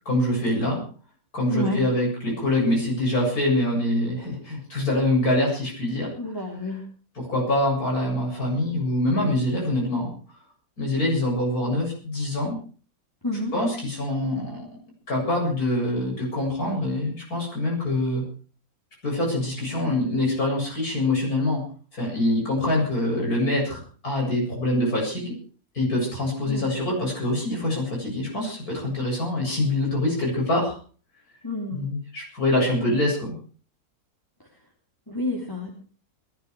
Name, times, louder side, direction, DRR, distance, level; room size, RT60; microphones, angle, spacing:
voice 1, 0.0-0.8 1.3-6.1 7.2-10.1 10.8-12.6 13.5-14.6 15.1-18.2 19.0-21.6 21.9-25.3 25.7-30.8 31.7-33.3, left 1 dB, 65° left, -1 dB, 8.3 m, -25 dB
voice 2, 1.5-1.8 6.2-6.9 13.2-13.5 26.5-26.7 31.4-31.8 35.1-35.7, left 1 dB, 15° left, -2 dB, 3.2 m, -29 dB
21.0 x 12.5 x 4.8 m, 0.40 s
omnidirectional pair, 1.7 m